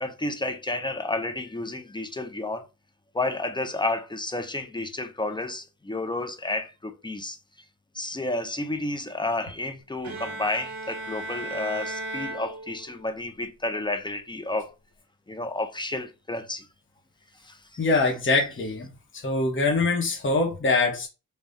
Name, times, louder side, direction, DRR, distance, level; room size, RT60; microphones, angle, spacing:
voice 1, 0.0-2.7 3.1-7.4 7.9-14.7 15.3-16.7 17.4-17.8, left 2 dB, 15° left, 0.4 m, -31 dB
Bowed string instrument, 10.0-13.2, right 2 dB, 55° right, 1.0 m, -36 dB
voice 2, 17.8-18.9 19.2-21.1, left 3 dB, 35° left, 1.0 m, -23 dB
3.5 x 2.3 x 3.9 m
wide cardioid pair, 145°, 33 cm